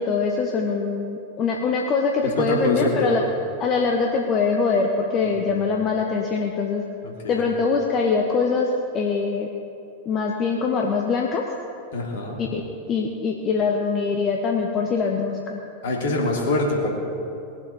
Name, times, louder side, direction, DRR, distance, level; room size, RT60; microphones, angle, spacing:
voice 1, 0.0-3.2 3.6-6.8 7.3-9.5 10.0-11.4 12.4-12.6 12.9-15.6, left 4 dB, 30° left, 1 dB, 1.2 m, -23 dB
voice 2, 2.2-3.1 5.5-5.6 7.0-7.5 11.9-12.4 15.8-16.9, left 2 dB, 55° left, -1 dB, 3.0 m, -25 dB
20.0 x 7.7 x 6.9 m, 2.8 s
figure-of-eight pair, 90°, 0 cm